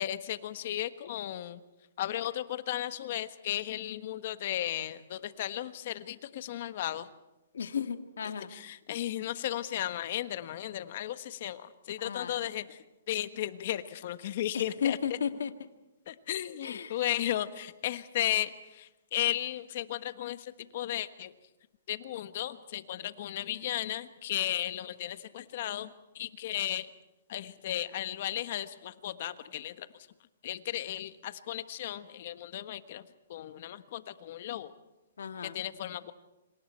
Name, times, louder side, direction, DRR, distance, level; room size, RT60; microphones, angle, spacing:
voice 1, 0.0-1.6 2.0-7.1 8.5-15.2 16.1-21.3 21.9-26.9 27.3-29.9 30.4-33.0 33.3-34.7 35.4-36.1, left 12 dB, 45° left, 12 dB, 1.3 m, -35 dB
voice 2, 7.5-8.5 12.0-12.3 14.5-15.5 16.6-17.0 35.2-35.6, left 7 dB, 80° left, 8 dB, 1.8 m, -34 dB
28.0 x 27.0 x 4.5 m, 1.0 s
hypercardioid pair, 160°, 0 cm